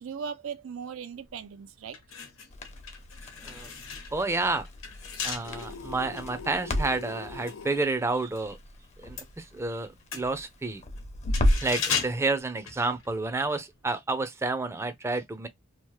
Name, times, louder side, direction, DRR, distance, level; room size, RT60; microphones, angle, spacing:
voice 1, 0.0-2.0, right 6 dB, 90° right, 0.4 m, -38 dB
sound 1, 1.3-1.4 1.8-8.5 8.7-13.4 13.7-13.8, left 6 dB, 90° left, 1.0 m, -37 dB
Crackle, 2.5-11.8, left 1 dB, 35° left, 0.7 m, -33 dB
voice 2, 4.1-4.7 5.2-8.6 9.0-10.8 11.6-15.5, right 3 dB, 15° right, 0.4 m, -30 dB
sound 2, 5.4-7.8, left 4 dB, 70° left, 0.3 m, -42 dB
2.9 x 2.0 x 3.1 m
head